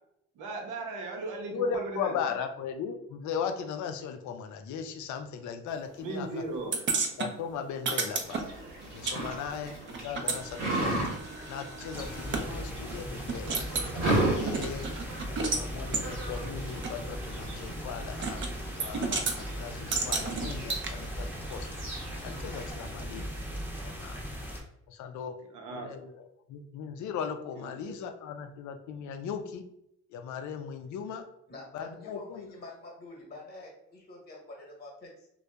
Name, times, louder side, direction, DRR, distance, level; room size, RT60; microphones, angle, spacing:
voice 1, 0.3-2.2 6.0-6.8 25.5-25.9 27.5-27.9, right 3 dB, 85° right, 1 dB, 0.7 m, -37 dB
voice 2, 1.5-6.7 7.2-8.4 8.9-9.8 10.0-11.2 11.5-14.9 15.3-18.4 18.8-21.7 22.2-23.3 23.5-24.2 24.9-25.4 25.7-29.6 30.1-31.3 31.7-32.5, left 6 dB, 70° left, 7 dB, 0.4 m, -38 dB
sound 1, 6.7-9.2 9.4-12.4 12.9-13.0 13.3-13.9 14.4-15.6 15.9-16.1 16.8-16.9 18.2-18.5 18.8-19.4 19.9-20.9, right 4 dB, 40° right, 0.5 m, -32 dB
sound 2, 8.2-22.7, right 2 dB, 60° right, 1.0 m, -36 dB
sound 3, 11.9-24.6, equal, 5° right, 0.7 m, -39 dB
voice 3, 31.5-35.3, left 3 dB, 35° left, -2 dB, 1.0 m, -46 dB
2.7 x 2.2 x 2.2 m, 0.77 s
cardioid pair, 90°, 30 cm